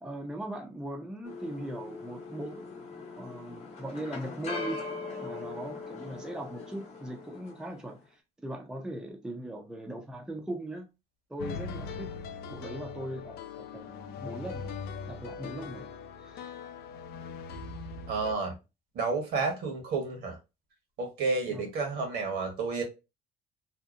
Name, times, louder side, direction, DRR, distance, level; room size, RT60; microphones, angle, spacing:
voice 1, 0.0-2.6 3.2-4.8 5.2-10.9 11.3-12.1 12.5-14.8 15.1-15.9 16.2-16.6 21.5-21.7, right 1 dB, 5° right, 0.4 m, -39 dB
sound 1, 1.2-7.8, left 4 dB, 40° left, 0.8 m, -41 dB
sound 2, 11.4-18.3, left 5 dB, 70° left, 0.4 m, -40 dB
voice 2, 18.1-18.5 18.9-20.4 21.0-22.8, right 4 dB, 75° right, 1.1 m, -30 dB
2.7 x 2.0 x 2.4 m
cardioid pair, 110°, 17 cm